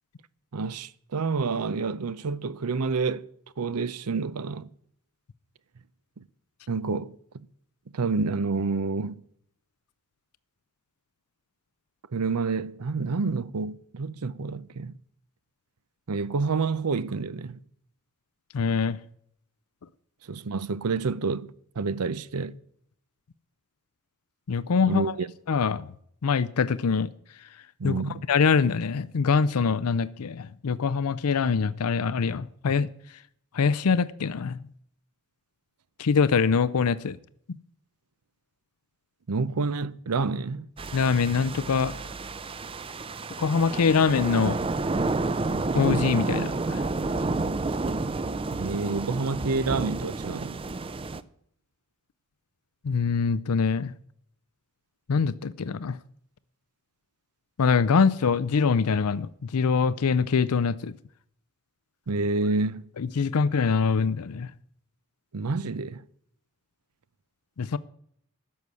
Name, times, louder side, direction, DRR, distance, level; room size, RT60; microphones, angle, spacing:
voice 1, 0.5-3.3 3.6-4.7 6.7-7.5 7.9-9.2 12.1-15.0 16.1-17.6 20.3-22.5 24.9-25.3 27.8-28.2 39.3-40.7 48.5-50.6 62.1-62.8 65.3-66.0, right 4 dB, 90° right, 0.6 m, -28 dB
voice 2, 18.5-19.0 24.5-25.2 25.5-25.9 26.2-27.1 27.4-27.5 27.8-28.0 28.3-33.2 33.5-34.6 36.0-37.2 40.9-42.0 43.4-44.6 45.7-46.9 52.8-53.9 55.1-56.0 57.6-61.0 63.0-64.5 67.6-67.8, left 5 dB, 85° left, 0.5 m, -24 dB
sound 1, 40.8-51.2, right 3 dB, 25° right, 0.5 m, -30 dB
11.0 x 6.9 x 9.5 m
head